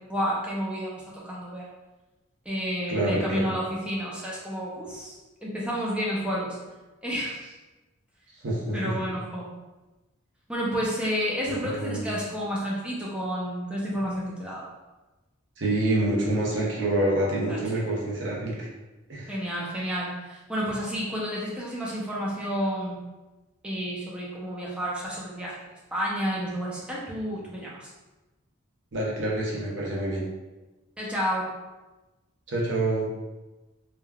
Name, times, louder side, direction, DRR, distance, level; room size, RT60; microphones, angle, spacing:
voice 1, 0.1-1.7 2.5-5.1 5.4-6.6 7.0-7.5 8.7-9.5 10.5-14.6 17.5-17.8 19.3-23.0 23.6-27.9 31.0-31.5, equal, 5° right, -5 dB, 0.5 m, -30 dB
voice 2, 2.9-3.6 8.4-8.8 11.5-12.0 15.6-18.7 19.1-19.4 28.9-30.2 32.5-33.1, right 1 dB, 55° right, -4 dB, 0.7 m, -27 dB
3.4 x 2.2 x 2.2 m, 1.1 s
head